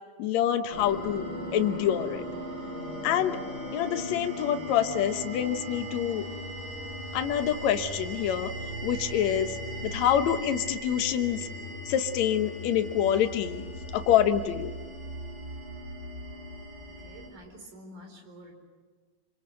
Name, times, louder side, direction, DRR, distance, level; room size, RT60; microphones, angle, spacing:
voice 1, 0.2-1.3 1.5-2.2 3.0-3.4 3.7-6.3 7.1-8.5 8.8-11.5 11.9-13.6 13.9-14.7, left 10 dB, 65° left, 7 dB, 2.3 m, -26 dB
sound 1, 0.7-17.3, equal, 25° right, 6.9 m, -38 dB
voice 2, 17.0-18.5, equal, 70° right, 4 dB, 5.8 m, -48 dB
26.5 x 26.0 x 7.7 m, 1.5 s
omnidirectional pair, 3.7 m